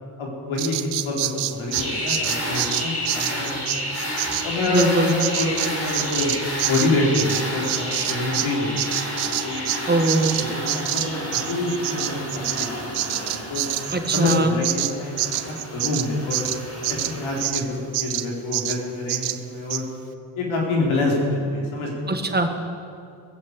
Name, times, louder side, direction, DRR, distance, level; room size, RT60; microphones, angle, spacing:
voice 1, 0.2-4.0 4.4-6.3 6.6-10.0 10.5-13.6 14.1-16.4 16.9-19.8 20.4-22.4, left 2 dB, 70° left, -2 dB, 4.4 m, -26 dB
Bird vocalization bird call bird song, 0.6-8.5 8.8-17.7 17.9-18.3 18.5-18.8 19.1-19.4 19.7-19.8, right 15 dB, 85° right, 0.8 m, -27 dB
sound 1, 1.7-17.4, equal, 30° left, 4.6 m, -31 dB
voice 2, 4.7-5.1 9.9-10.4 13.9-14.6 22.1-22.5, right 2 dB, 20° right, 5 dB, 1.7 m, -21 dB
19.5 x 7.6 x 8.1 m, 2.4 s
cardioid pair, 85°, 49 cm